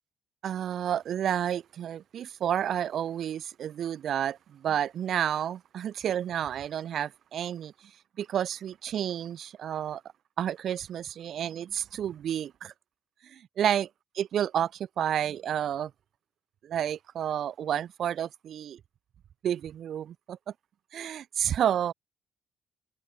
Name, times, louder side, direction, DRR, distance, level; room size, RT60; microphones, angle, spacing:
voice 1, 0.4-7.7 8.2-10.0 10.4-12.7 13.2-13.9 14.1-15.9 16.6-18.8 19.4-20.4 20.9-21.9, right 10 dB, 65° right, 1.6 m, -30 dB
cardioid pair, 90°, 0 cm